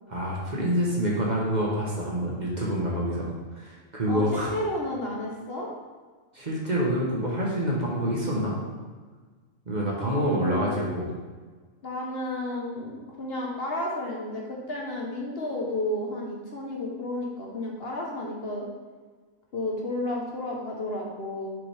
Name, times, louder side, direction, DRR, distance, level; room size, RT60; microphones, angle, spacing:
voice 1, 0.1-3.3 3.5-4.6 6.3-8.5 9.7-11.1, equal, 35° right, -4 dB, 1.1 m, -27 dB
voice 2, 4.1-5.7 10.0-10.8 11.8-18.7 19.5-21.5, left 1 dB, 50° left, -2 dB, 1.1 m, -32 dB
6.7 x 5.3 x 3.3 m, 1.4 s
omnidirectional pair, 1.4 m